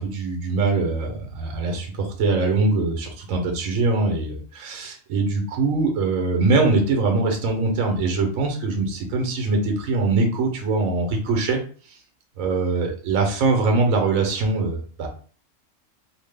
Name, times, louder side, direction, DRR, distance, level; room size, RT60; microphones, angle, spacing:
voice 1, 0.0-11.6 12.4-15.1, right 3 dB, 85° right, 3 dB, 1.1 m, -22 dB
2.9 x 2.1 x 3.3 m, 0.42 s
omnidirectional pair, 1.4 m